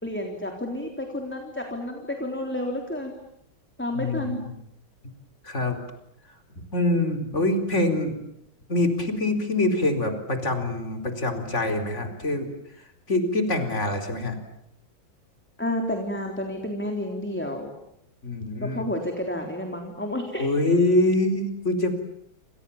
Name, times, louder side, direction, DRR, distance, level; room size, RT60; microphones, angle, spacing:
voice 1, 0.0-3.1 3.8-4.4 15.6-17.7 18.6-20.5, left 1 dB, 5° left, 3 dB, 3.5 m, -30 dB
voice 2, 3.9-4.5 5.4-5.8 6.6-8.2 8.7-12.5 13.1-14.4 18.2-18.9 20.4-22.0, left 2 dB, 35° left, 7 dB, 4.6 m, -24 dB
28.5 x 28.0 x 7.3 m, 0.77 s
omnidirectional pair, 2.1 m